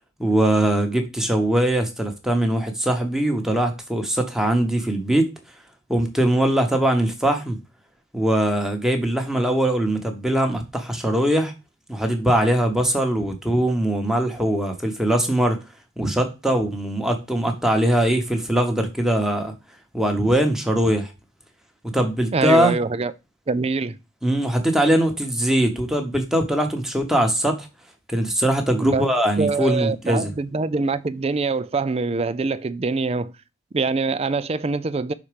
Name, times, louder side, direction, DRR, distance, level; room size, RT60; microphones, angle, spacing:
voice 1, 0.2-5.3 5.9-7.6 8.1-11.5 11.9-15.6 16.0-19.5 19.9-21.1 21.9-22.8 24.2-27.6 28.1-30.3, right 1 dB, ahead, 1.1 m, -21 dB
voice 2, 22.3-23.1 23.5-24.0 28.8-29.1 29.4-33.3 33.7-35.1, right 4 dB, 30° right, 0.4 m, -24 dB
6.0 x 4.3 x 5.0 m
head